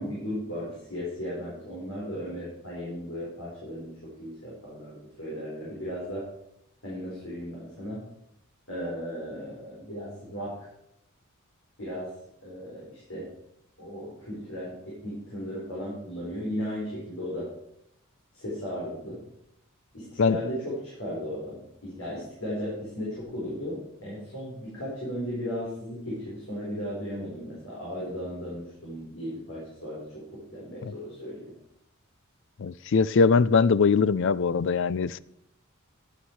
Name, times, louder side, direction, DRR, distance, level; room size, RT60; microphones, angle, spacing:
voice 1, 0.0-6.3 6.8-8.1 8.7-10.7 11.8-12.1 12.4-13.3 13.8-17.5 18.3-19.2 19.9-31.5, equal, 75° left, 4.7 m, -36 dB
voice 2, 32.6-35.2, left 5 dB, 60° left, 0.4 m, -22 dB
11.5 x 9.0 x 4.7 m
head